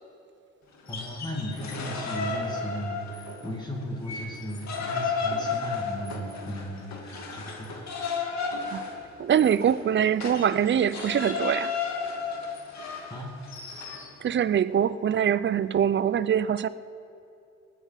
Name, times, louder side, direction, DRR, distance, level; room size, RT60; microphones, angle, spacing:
sound 1, 0.7-3.5 3.8-14.1, left 5 dB, 65° left, 2.3 m, -33 dB
voice 1, 0.9-8.0 13.1-13.3, equal, 15° left, -1 dB, 2.3 m, -36 dB
voice 2, 9.2-11.7 14.2-16.7, right 9 dB, 40° right, 17 dB, 0.5 m, -23 dB
19.0 x 8.1 x 5.8 m, 2.7 s
cardioid pair, 90°, 30 cm